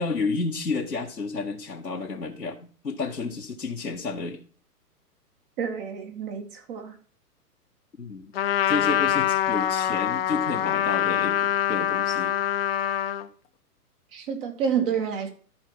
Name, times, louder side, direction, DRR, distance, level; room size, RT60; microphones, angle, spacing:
voice 1, 0.0-4.4 8.0-8.3 8.7-12.3, left 4 dB, 85° left, -2 dB, 1.4 m, -31 dB
voice 2, 5.6-7.0 14.1-15.3, right 7 dB, 35° right, 4 dB, 1.9 m, -29 dB
Trumpet, 8.3-13.3, left 11 dB, 40° left, 0.9 m, -24 dB
13.0 x 4.4 x 5.9 m, 0.42 s
figure-of-eight pair, 120°, 48 cm